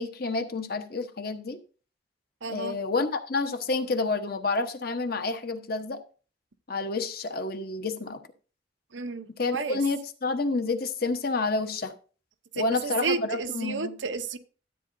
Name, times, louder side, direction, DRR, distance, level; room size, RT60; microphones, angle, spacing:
voice 1, 0.0-1.6 2.5-6.0 6.7-8.2 9.4-11.9 12.5-13.9, left 3 dB, 55° left, 1.1 m, -29 dB
voice 2, 2.4-2.8 8.9-9.8 12.5-14.4, right 4 dB, 85° right, 0.8 m, -32 dB
13.0 x 8.5 x 2.6 m
head